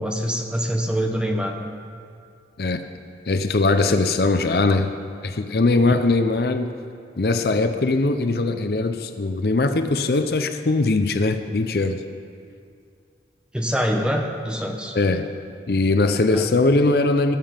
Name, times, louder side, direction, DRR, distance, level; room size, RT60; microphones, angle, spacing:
voice 1, 0.0-1.7 13.5-15.0 16.3-16.5, equal, 5° right, 3 dB, 0.9 m, -25 dB
voice 2, 3.3-4.9 5.2-6.7 7.2-12.0 14.9-15.3 15.7-17.4, left 3 dB, 60° left, 9 dB, 0.6 m, -20 dB
19.0 x 7.3 x 5.1 m, 2.3 s
head